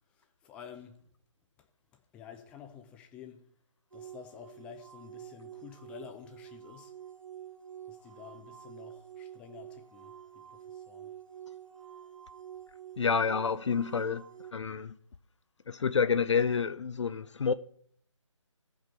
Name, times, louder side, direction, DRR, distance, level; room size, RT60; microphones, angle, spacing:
voice 1, 0.2-1.0 1.9-3.4 3.9-6.9 7.9-10.1 10.5-11.1, left 8 dB, 5° left, 0.5 m, -50 dB
sound 1, 3.9-14.5, right 10 dB, 90° right, 1.4 m, -48 dB
voice 2, 13.0-14.2 14.5-15.0 15.7-17.5, left 6 dB, 65° left, 0.5 m, -28 dB
15.0 x 5.3 x 4.4 m
figure-of-eight pair, 155°, 16 cm